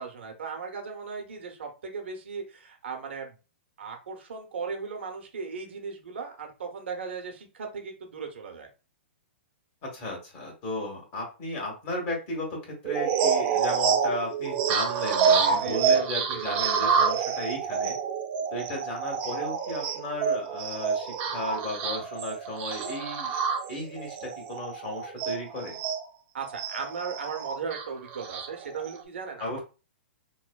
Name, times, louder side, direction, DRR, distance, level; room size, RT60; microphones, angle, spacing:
voice 1, 0.0-3.3 3.8-8.7 15.4-16.5 26.3-29.6, right 5 dB, 75° right, 3 dB, 0.9 m, -37 dB
voice 2, 9.8-18.0 18.5-23.4 23.7-25.8 29.4-29.6, left 1 dB, 35° left, -1 dB, 1.4 m, -35 dB
sound 1, 12.8-26.0 26.5-29.0, right 6 dB, 35° right, 0.7 m, -28 dB
3.1 x 2.1 x 2.2 m, 0.32 s
hypercardioid pair, 130°, 6 cm